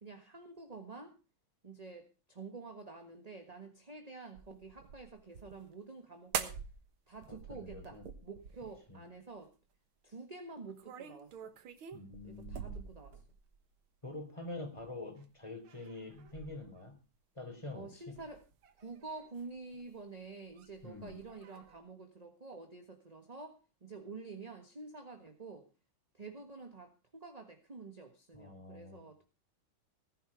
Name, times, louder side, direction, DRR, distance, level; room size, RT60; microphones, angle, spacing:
voice 1, 0.0-1.2 1.6-6.6 7.1-9.5 10.0-11.5 12.2-13.2 17.7-18.4 18.8-25.7 26.1-29.2, right 4 dB, 20° right, 5 dB, 1.4 m, -49 dB
sound 1, 4.3-5.7 6.3-6.9 7.1-8.9 10.7-13.6 14.8-15.2 15.6-16.8 18.0-19.9 20.2-21.8, right 7 dB, 85° right, 2.2 m, -45 dB
voice 2, 7.3-8.1 8.9-9.0 11.9-12.9 14.0-16.9 17.4-18.1 20.8-21.2 28.3-29.2, left 2 dB, 15° left, 5 dB, 3.9 m, -46 dB
18.0 x 11.0 x 5.0 m, 0.33 s
omnidirectional pair, 2.2 m